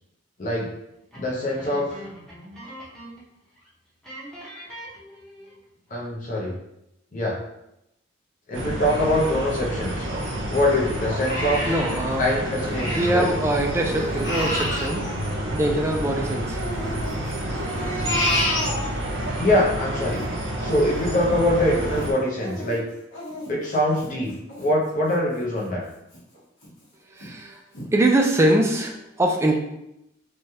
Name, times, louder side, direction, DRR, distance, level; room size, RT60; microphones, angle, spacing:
voice 1, 1.1-2.0 5.9-6.5 7.1-7.4 8.5-10.1 10.5-11.6 12.2-13.3 19.4-20.2 20.6-22.8 23.5-24.3 24.6-25.8, left 1 dB, 40° left, -3 dB, 0.7 m, -23 dB
sound 1, 1.1-3.3 3.6-3.7 4.0-5.7, equal, 5° left, 0.8 m, -42 dB
sound 2, 8.5-22.1, right 1 dB, 75° right, 0.6 m, -29 dB
Crying sobbing, 8.9-10.5 10.9-13.3 13.6-16.1 16.5-19.3 19.7-25.2 25.6-25.7 26.1-26.7 27.2-27.3 27.7-27.9, left 1 dB, 65° left, 1.1 m, -31 dB
voice 2, 11.7-12.2 12.8-15.0 15.5-16.6 27.1-27.6 27.9-29.6, right 1 dB, 15° right, 2 dB, 0.3 m, -23 dB
3.1 x 2.3 x 2.7 m, 0.85 s
head